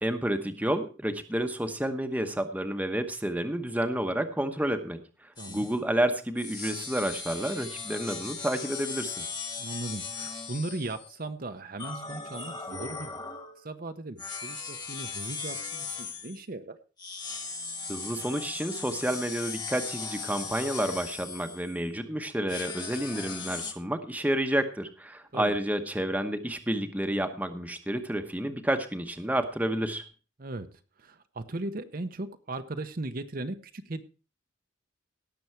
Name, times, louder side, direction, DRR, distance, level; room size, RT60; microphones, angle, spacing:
voice 1, 0.0-9.3 17.9-30.0, right 1 dB, 10° right, 7 dB, 1.0 m, -30 dB
sound 1, 5.4-5.8 6.4-11.1 11.8-13.6 14.2-16.4 17.0-21.9 22.5-23.7, left 5 dB, 20° left, 1.6 m, -38 dB
voice 2, 5.4-5.7 9.6-13.2 13.6-16.8 25.3-25.5 30.4-30.7 31.0-34.0, right 2 dB, 45° right, 8 dB, 0.8 m, -37 dB
17.5 x 7.0 x 4.5 m, 0.36 s
head